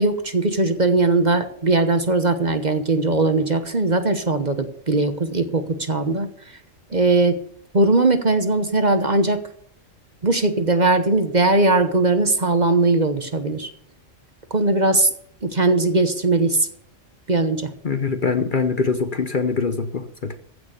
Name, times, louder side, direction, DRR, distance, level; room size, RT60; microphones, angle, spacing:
voice 1, 0.0-6.3 6.9-7.4 7.7-9.4 10.2-13.7 14.5-15.1 15.4-16.7 17.3-17.7, right 2 dB, 35° right, 9 dB, 1.1 m, -19 dB
voice 2, 17.8-20.3, left 4 dB, 45° left, 9 dB, 0.9 m, -23 dB
15.5 x 6.3 x 8.2 m, 0.64 s
omnidirectional pair, 1.4 m